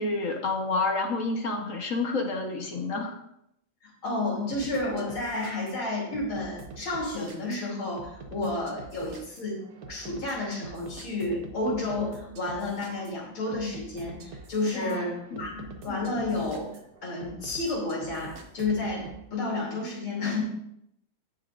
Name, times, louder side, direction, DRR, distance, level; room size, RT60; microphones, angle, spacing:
voice 1, 0.0-3.2 14.7-15.0 15.3-15.6, left 3 dB, 45° left, 3 dB, 1.3 m, -29 dB
voice 2, 3.8-16.7 17.0-20.4, left 2 dB, 80° left, -3 dB, 3.8 m, -31 dB
sound 1, 4.5-19.2, right 3 dB, 55° right, 1.3 m, -46 dB
17.0 x 6.4 x 2.6 m, 0.77 s
omnidirectional pair, 2.2 m